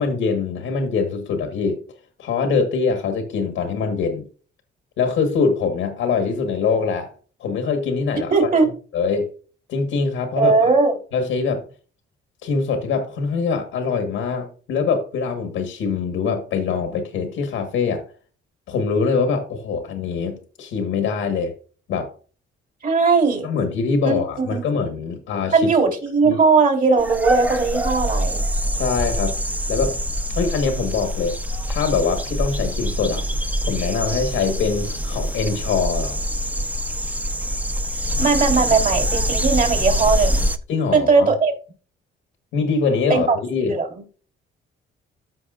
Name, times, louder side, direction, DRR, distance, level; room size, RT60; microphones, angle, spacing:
voice 1, 0.0-1.8 2.2-4.3 5.0-7.1 7.4-8.3 8.6-8.7 8.9-9.3 9.7-10.7 11.1-11.6 12.4-18.0 18.7-21.5 21.9-22.1 23.4-25.7 26.2-26.4 28.7-29.4 29.7-30.0 30.3-31.4 31.7-33.3 33.6-36.3 40.7-41.3 42.5-43.7, left 5 dB, 90° left, 4 dB, 1.6 m, -23 dB
voice 2, 8.3-8.7 10.4-11.0 22.8-23.5 24.0-24.6 25.5-28.4 38.2-40.5 40.9-41.5 43.1-43.4 43.7-44.0, right 4 dB, 45° right, 1 dB, 3.4 m, -18 dB
sound 1, 27.0-40.6, equal, 10° right, 0.8 m, -24 dB
14.0 x 5.8 x 2.5 m, 0.39 s
cardioid pair, 90°, 20 cm